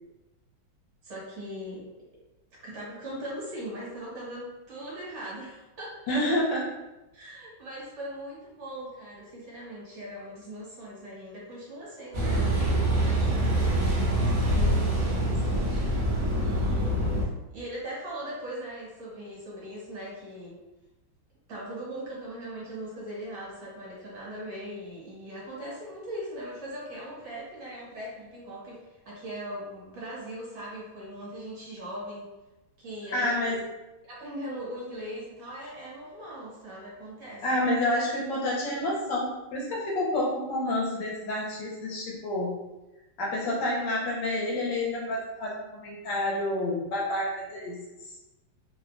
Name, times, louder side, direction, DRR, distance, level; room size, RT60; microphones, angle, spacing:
voice 1, 1.0-1.8 2.6-6.1 7.1-15.8 16.0-20.6 21.5-32.3 32.8-33.3 34.1-37.4, equal, 65° right, -6 dB, 1.5 m, -40 dB
voice 2, 6.1-6.7 14.5-15.1 33.1-33.6 37.4-42.5 43.2-48.1, left 1 dB, 75° left, -4 dB, 1.3 m, -29 dB
Car passing by / Idling / Accelerating revving vroom, 12.1-17.2, right 1 dB, 85° right, 0.4 m, -25 dB
3.3 x 2.1 x 2.5 m, 1.0 s
omnidirectional pair, 2.1 m